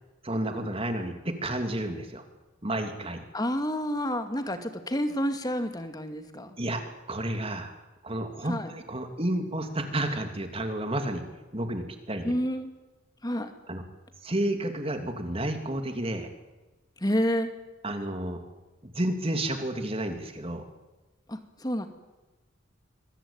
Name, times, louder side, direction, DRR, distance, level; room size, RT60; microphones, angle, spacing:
voice 1, 0.2-2.2 2.6-3.2 6.6-6.8 7.1-7.8 8.0-11.2 11.5-12.3 13.7-13.8 14.2-16.3 17.8-18.4 18.8-20.7, right 1 dB, 30° right, 6 dB, 2.9 m, -31 dB
voice 2, 3.3-6.6 8.4-8.7 12.2-12.7 13.2-13.5 17.0-17.5 21.3-21.9, equal, 20° left, 8 dB, 2.3 m, -29 dB
26.0 x 22.5 x 8.9 m, 1.1 s
head